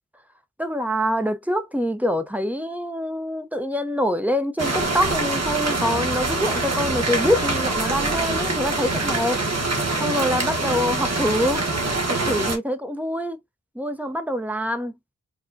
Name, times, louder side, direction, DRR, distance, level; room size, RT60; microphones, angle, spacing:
voice 1, 0.6-9.4 10.0-11.6 12.1-13.4 13.8-14.9, equal, 5° right, 0.7 m, -25 dB
sound 1, 4.6-12.6, right 2 dB, 55° right, 1.1 m, -24 dB
4.7 x 2.2 x 2.6 m
wide cardioid pair, 60°, 30 cm